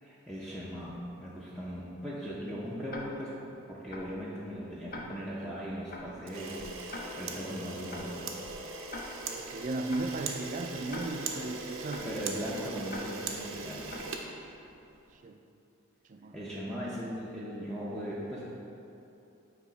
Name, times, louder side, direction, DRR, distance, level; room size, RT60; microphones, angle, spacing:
voice 1, 0.0-3.4 3.7-8.6 12.0-14.0 16.3-18.4, equal, 5° left, -8 dB, 0.6 m, -39 dB
Tick-tock, 2.9-3.0 3.9-4.0 4.9-5.0 5.9-6.0 6.9-7.0 7.9-8.0 8.9-9.0 9.9-10.0 10.9-11.0 11.9-12.0 12.9-13.0 13.9-14.0, left 3 dB, 45° left, 0.7 m, -41 dB
Camera, 6.2-15.0, right 4 dB, 75° right, 0.6 m, -40 dB
voice 2, 9.3-12.1 15.1-15.4 16.1-16.3, right 2 dB, 40° right, 7 dB, 0.3 m, -36 dB
8.2 x 3.0 x 4.9 m, 2.8 s
head